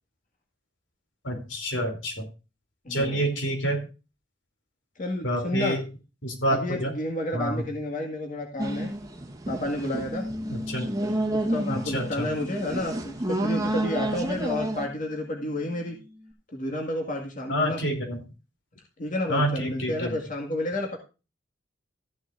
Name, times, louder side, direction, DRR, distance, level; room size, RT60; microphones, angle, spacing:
voice 1, 1.2-2.2 2.9-3.8 5.2-5.8 6.2-6.9 7.3-7.6 10.5-11.0 11.7-12.3 17.5-18.2 19.3-20.2, equal, 85° left, 4 dB, 3.3 m, -28 dB
voice 2, 2.9-3.2 5.0-5.8 6.5-8.9 9.5-10.2 11.0-16.0 16.5-17.8 19.0-21.0, left 1 dB, 45° left, 1 dB, 2.0 m, -31 dB
sound 1, 8.6-14.9, right 1 dB, 20° right, 1.3 m, -30 dB
Bass guitar, 10.1-16.3, left 1 dB, 5° right, 2.2 m, -41 dB
14.0 x 10.5 x 2.6 m, 0.31 s
head